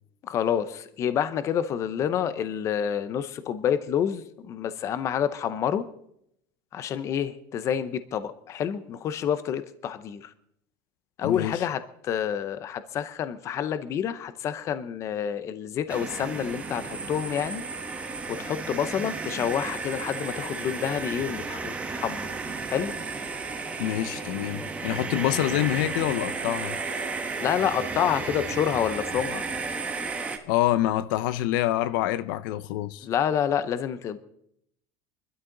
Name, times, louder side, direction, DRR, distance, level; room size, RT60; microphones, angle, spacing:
voice 1, 0.2-5.8 6.7-10.3 11.2-17.6 18.3-22.3 22.7-22.9 27.4-29.4 33.0-34.2, left 9 dB, 30° left, 0.7 m, -28 dB
voice 2, 11.2-11.6 23.8-26.8 30.5-33.1, left 14 dB, 85° left, 0.6 m, -26 dB
sound 1, 15.9-30.4, right 4 dB, 15° right, 1.0 m, -33 dB
25.0 x 12.5 x 3.9 m
cardioid pair, 180°, 10 cm